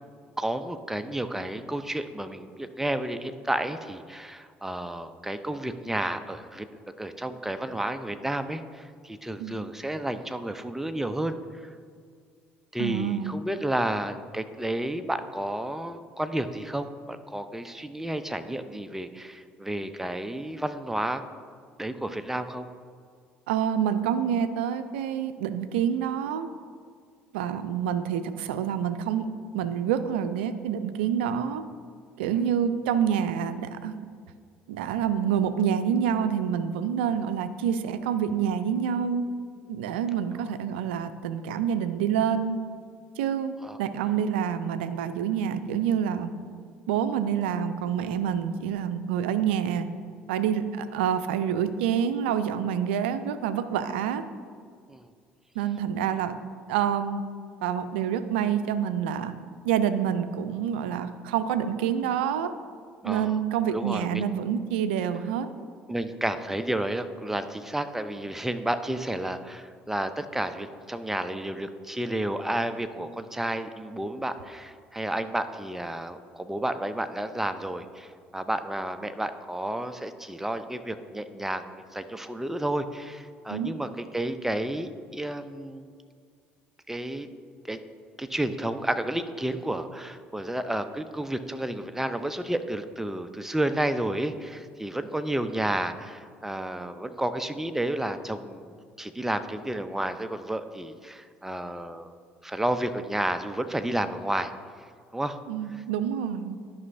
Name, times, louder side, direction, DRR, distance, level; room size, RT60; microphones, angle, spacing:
voice 1, 0.4-6.7 7.0-11.6 12.7-21.2 21.8-22.7 43.6-43.8 54.9-55.1 63.0-63.4 63.7-64.3 65.9-85.9 86.9-87.3 87.6-87.8 88.2-102.1 102.4-104.5 105.1-105.4, right 1 dB, 5° right, 9 dB, 0.5 m, -31 dB
voice 2, 12.8-13.3 23.5-26.5 27.3-29.3 29.5-31.6 32.2-33.9 34.7-39.3 39.7-42.6 43.2-46.3 46.9-49.9 50.3-54.2 55.6-56.3 56.7-57.2 57.6-59.3 59.6-62.5 63.0-65.5 83.5-83.7 105.5-106.6, right 8 dB, 80° right, 11 dB, 0.4 m, -27 dB
12.5 x 5.5 x 2.6 m, 2.1 s
hypercardioid pair, 60°, 6 cm